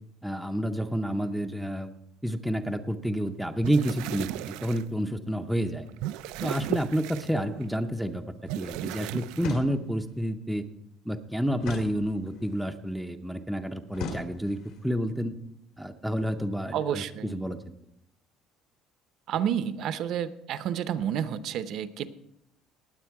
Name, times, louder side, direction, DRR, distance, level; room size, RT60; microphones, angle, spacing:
voice 1, 0.2-1.9 2.2-5.8 6.4-8.2 8.6-10.6 11.1-15.3 15.8-17.6, equal, ahead, 5 dB, 0.6 m, -29 dB
sound 1, 3.5-4.8 5.7-7.7 8.5-9.5, right 15 dB, 85° right, 0.4 m, -35 dB
sound 2, 9.4-10.1 11.6-12.6 13.9-14.8, left 4 dB, 70° left, 2.2 m, -39 dB
voice 2, 16.7-17.3 19.3-22.1, right 9 dB, 45° right, 12 dB, 0.7 m, -30 dB
19.5 x 8.1 x 4.7 m, 0.78 s
cardioid pair, 175°, 0 cm